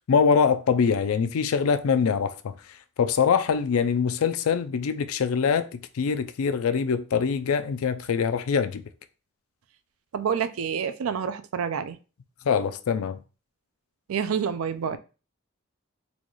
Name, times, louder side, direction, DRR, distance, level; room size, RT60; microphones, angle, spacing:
voice 1, 0.1-2.4 3.0-8.8 12.5-13.2, left 6 dB, 80° left, 0.4 m, -23 dB
voice 2, 10.1-12.0 14.1-15.0, right 7 dB, 75° right, 0.4 m, -28 dB
4.1 x 2.3 x 3.0 m
head